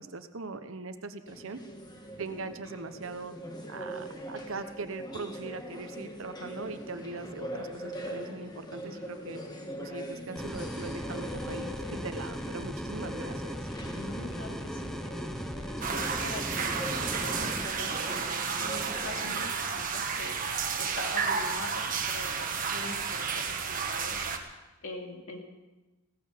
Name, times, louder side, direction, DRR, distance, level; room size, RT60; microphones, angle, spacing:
voice 1, 0.0-1.6 2.2-3.3 3.7-9.4 9.8-13.7, right 3 dB, 75° right, 10 dB, 1.0 m, -41 dB
sound 1, 1.3-19.4, equal, 20° left, 1.5 m, -42 dB
sound 2, 10.4-17.7, equal, ahead, 0.8 m, -37 dB
voice 2, 13.9-15.4 15.9-20.4 20.8-24.2 24.8-25.4, left 2 dB, 70° left, 1 dB, 2.6 m, -43 dB
sound 3, 15.8-24.4, right 5 dB, 40° right, 1.5 m, -32 dB
17.0 x 14.5 x 5.1 m, 1.1 s
head